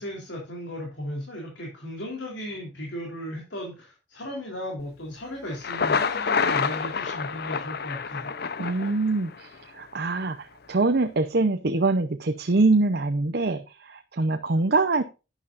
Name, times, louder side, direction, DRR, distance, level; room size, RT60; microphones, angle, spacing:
voice 1, 0.0-8.3, left 1 dB, 75° left, 0 dB, 3.8 m, -36 dB
Thunder, 5.5-9.5, left 5 dB, 55° left, 0.7 m, -28 dB
voice 2, 8.6-15.0, right 3 dB, 60° right, 8 dB, 0.8 m, -24 dB
11.5 x 10.0 x 2.6 m, 0.30 s
head